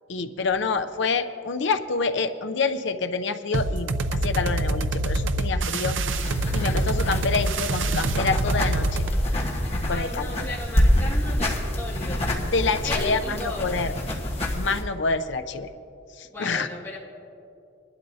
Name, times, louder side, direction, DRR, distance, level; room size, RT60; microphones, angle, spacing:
voice 1, 0.1-6.0 6.5-9.0 9.9-10.4 12.5-13.9 14.5-15.7 16.2-16.7, left 4 dB, 60° left, 8 dB, 0.6 m, -27 dB
sound 1, 3.5-9.2, right 2 dB, 70° right, 0.5 m, -25 dB
sound 2, 6.1-14.8, left 1 dB, 30° left, 1.3 m, -27 dB
voice 2, 9.9-12.4 12.8-13.7 16.3-17.0, left 2 dB, 15° left, -9 dB, 2.1 m, -35 dB
21.5 x 12.0 x 2.8 m, 2.7 s
head